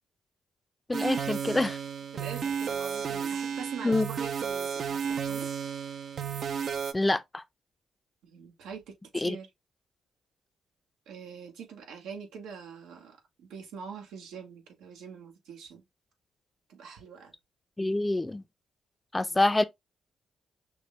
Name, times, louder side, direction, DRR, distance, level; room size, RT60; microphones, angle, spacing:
voice 1, 0.9-1.8 3.8-4.1 6.9-7.4 9.1-9.4 17.8-18.4 19.1-19.6, left 2 dB, 15° left, 0.5 m, -26 dB
sound 1, 0.9-6.9, right 7 dB, 65° right, 0.5 m, -33 dB
voice 2, 2.1-5.5 8.2-9.5 11.1-15.8 16.7-17.3 19.1-19.4, right 6 dB, 85° right, 1.2 m, -44 dB
6.0 x 2.2 x 3.2 m
supercardioid pair, 60°, 0 cm